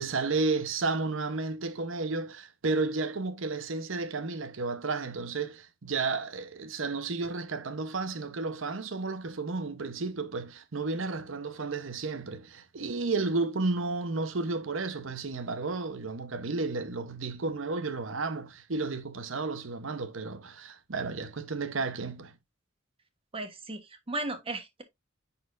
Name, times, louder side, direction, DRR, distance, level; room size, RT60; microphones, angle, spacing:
voice 1, 0.0-22.3, right 3 dB, 70° right, 0.9 m, -32 dB
voice 2, 23.3-24.8, right 2 dB, 25° right, 1.1 m, -36 dB
9.6 x 4.3 x 2.5 m
head